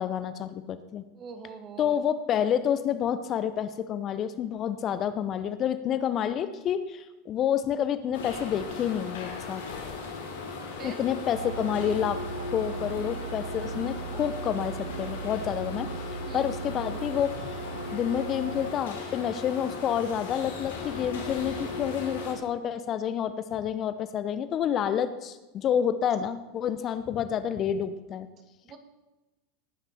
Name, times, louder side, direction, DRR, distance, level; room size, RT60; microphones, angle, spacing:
voice 1, 0.0-1.0 1.8-9.6 10.8-12.2 12.5-15.9 16.3-17.6 17.9-28.3, left 9 dB, 40° left, 12 dB, 0.9 m, -29 dB
voice 2, 1.1-2.1 10.8-11.0 16.3-16.5 26.8-27.0 28.6-28.8, right 6 dB, 40° right, 7 dB, 2.2 m, -43 dB
sound 1, 8.1-22.3, left 4 dB, 70° left, 2.9 m, -38 dB
sound 2, 11.3-18.7, right 6 dB, 80° right, 0.6 m, -38 dB
18.5 x 9.7 x 4.3 m, 1.1 s
hypercardioid pair, 85°, 0 cm